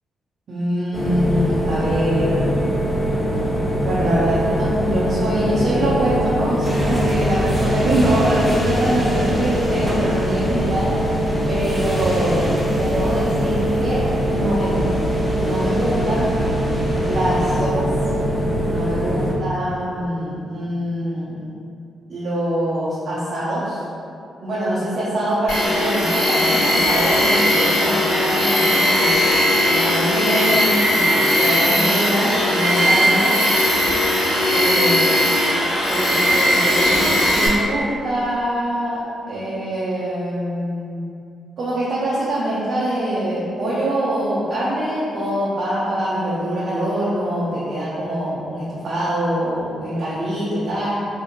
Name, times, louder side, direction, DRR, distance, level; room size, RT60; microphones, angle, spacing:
voice 1, 0.5-2.5 3.8-11.0 11.5-12.5 12.8-14.0 14.3-14.9 15.3-16.3 17.0-17.9 18.6-21.4 22.1-23.8 24.4-29.1 29.6-33.4 34.5-35.0 35.9-41.1 41.6-50.9, right 1 dB, 60° right, -11 dB, 0.6 m, -23 dB
sound 1, 0.9-19.3, equal, 40° left, 0.6 m, -22 dB
sound 2, 6.6-17.6, equal, 20° right, 0.9 m, -29 dB
Tools, 25.5-37.5, left 1 dB, 70° left, 0.8 m, -18 dB
3.0 x 2.1 x 2.5 m, 2.5 s
hypercardioid pair, 40°, 0 cm